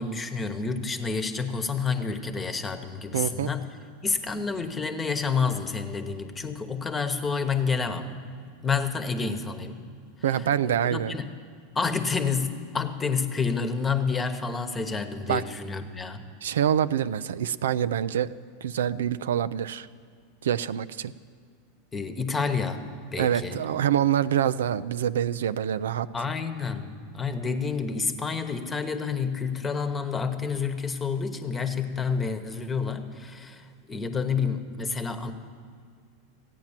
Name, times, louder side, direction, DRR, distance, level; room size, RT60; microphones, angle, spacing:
voice 1, 0.0-3.7 4.0-8.1 8.6-9.8 10.7-11.3 11.7-16.2 21.9-23.6 26.1-35.3, left 5 dB, 20° left, 9 dB, 1.1 m, -29 dB
voice 2, 3.1-3.5 10.2-11.1 15.3-15.4 16.4-19.9 20.4-21.1 23.2-26.1, right 10 dB, 85° right, 14 dB, 0.4 m, -26 dB
15.0 x 9.2 x 7.3 m, 2.1 s
hypercardioid pair, 110°, 0 cm